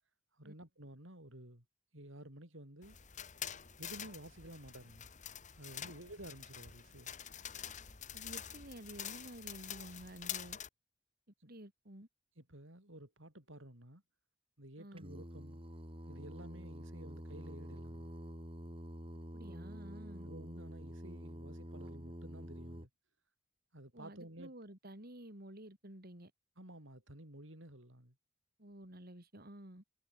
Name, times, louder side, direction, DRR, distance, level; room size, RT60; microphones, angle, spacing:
voice 1, 0.3-1.7 1.9-3.0 3.8-5.1 5.5-7.1 11.4-11.5 12.4-14.0 14.6-15.6 16.1-18.1 20.2-22.9 23.7-24.5 26.6-28.2, right 1 dB, 70° right, 7.3 m, -52 dB
sound 1, 2.8-10.7, left 9 dB, 35° left, 1.9 m, -47 dB
voice 2, 8.1-10.6 11.4-12.1 14.8-15.1 19.3-20.3 23.9-26.3 28.6-29.8, right 1 dB, 50° right, 4.1 m, -51 dB
Singing, 15.0-22.9, equal, 25° right, 5.9 m, -48 dB
head